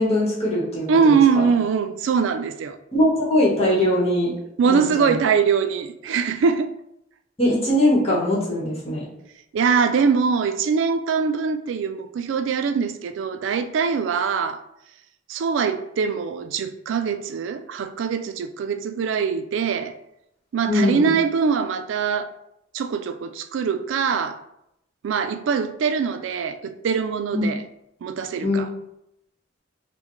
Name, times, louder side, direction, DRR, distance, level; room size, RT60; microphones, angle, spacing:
voice 1, 0.0-1.5 2.9-4.3 4.6-5.2 7.4-9.0 20.7-21.1 27.3-27.4 28.4-28.6, left 1 dB, 35° left, 1.1 m, -21 dB
voice 2, 0.9-2.8 4.6-6.7 9.5-14.6 15.3-19.9 20.5-22.3 22.7-24.4 25.0-27.6 28.0-28.7, right 6 dB, 80° right, 0.3 m, -22 dB
4.7 x 2.1 x 3.0 m
head